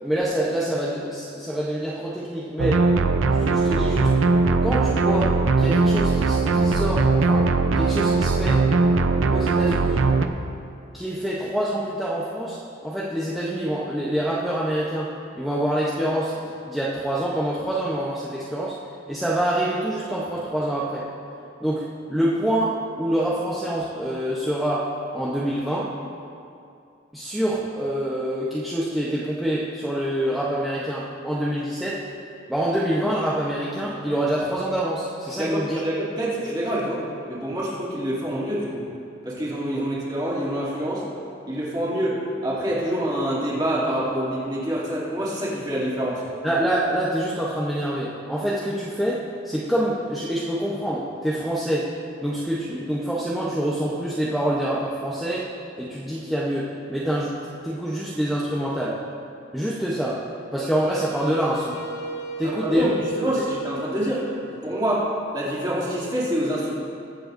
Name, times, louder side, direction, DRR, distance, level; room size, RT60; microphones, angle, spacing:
voice 1, 0.0-2.9 3.4-4.2 4.6-8.7 9.3-10.0 10.9-18.8 19.1-21.1 21.6-26.0 27.1-32.1 32.5-35.8 39.8-39.9 46.4-51.9 52.2-55.5 55.8-59.0 59.5-61.8 62.4-62.9 63.4-63.5, right 1 dB, ahead, -8 dB, 0.8 m, -26 dB
sound 1, 2.6-10.3, right 3 dB, 90° right, 0.6 m, -20 dB
voice 2, 35.4-38.9 39.2-41.0 41.5-46.2 62.4-62.9 63.2-66.7, equal, 20° right, -8 dB, 2.7 m, -26 dB
Wind instrument woodwind instrument, 60.5-65.5, right 3 dB, 70° left, 2.0 m, -35 dB
22.5 x 7.7 x 2.6 m, 2.6 s
head